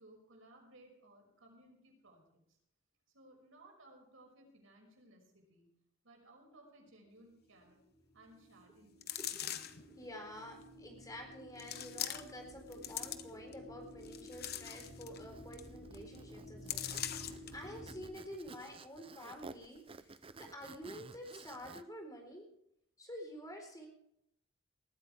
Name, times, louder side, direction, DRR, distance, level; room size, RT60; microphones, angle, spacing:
voice 1, 0.0-2.6 3.1-5.7 6.0-7.8 8.1-9.2, right 1 dB, 80° right, 0 dB, 6.1 m, -61 dB
sound 1, 7.0-18.1, equal, 80° left, 4.6 m, -53 dB
sound 2, 9.0-9.9 10.6-10.7 11.6-12.4 12.7-13.5 14.0-15.2 15.5-15.7 15.9-16.2 16.7-17.5 18.0-18.1, left 11 dB, 50° left, 1.0 m, -41 dB
voice 2, 9.3-22.5 23.0-23.9, equal, 20° left, 2 dB, 4.2 m, -49 dB
Zipper (clothing), 15.2-21.8, right 4 dB, 30° right, 0.5 m, -54 dB
20.0 x 14.5 x 3.5 m, 0.74 s
head